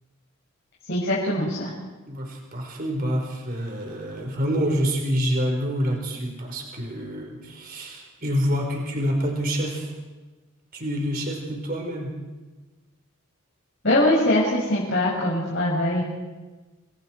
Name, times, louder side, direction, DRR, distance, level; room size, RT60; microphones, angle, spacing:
voice 1, 0.9-1.7 13.8-16.0, left 1 dB, 55° left, -6 dB, 6.2 m, -22 dB
voice 2, 2.1-9.9 10.7-12.1, equal, 45° right, 1 dB, 4.6 m, -27 dB
29.0 x 23.5 x 4.6 m, 1.2 s
head